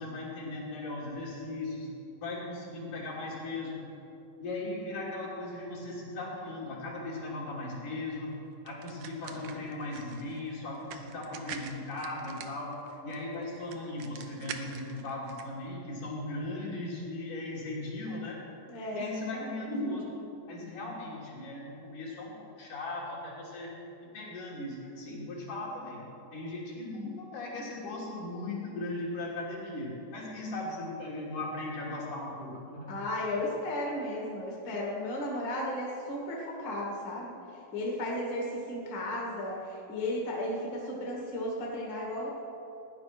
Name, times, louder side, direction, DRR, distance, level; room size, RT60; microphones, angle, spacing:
voice 1, 0.0-1.9 2.2-3.8 4.4-8.4 8.6-18.4 18.9-20.2 20.5-23.7 24.0-26.0 26.3-33.0, left 2 dB, 60° left, -5 dB, 4.4 m, -38 dB
sound 1, 8.7-15.4, right 8 dB, 75° right, 2.0 m, -46 dB
voice 2, 18.7-19.6 32.9-37.4 37.7-42.3, left 1 dB, 35° left, -3 dB, 2.4 m, -34 dB
17.0 x 10.5 x 6.0 m, 2.9 s
omnidirectional pair, 4.1 m